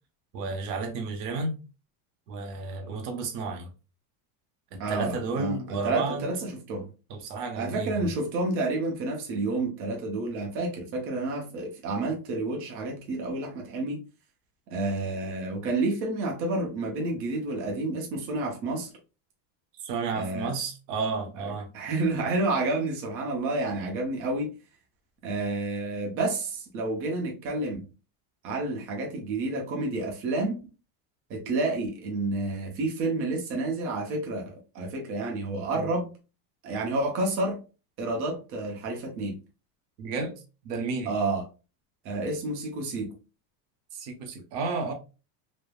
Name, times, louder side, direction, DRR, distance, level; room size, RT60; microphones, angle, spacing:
voice 1, 0.3-1.6 2.3-3.7 4.7-6.3 7.1-8.1 19.8-21.7 35.7-35.8 40.0-40.4 40.6-41.1 43.9-44.9, right 4 dB, 80° right, 0.9 m, -32 dB
voice 2, 4.8-6.9 7.5-14.0 14.7-18.9 20.2-20.5 21.4-24.5 25.2-27.9 28.4-30.6 31.3-36.1 36.6-37.6 38.0-39.4 41.1-41.4 42.0-43.1, right 2 dB, 30° right, 0.6 m, -30 dB
3.3 x 2.1 x 2.2 m
supercardioid pair, 155°, 47 cm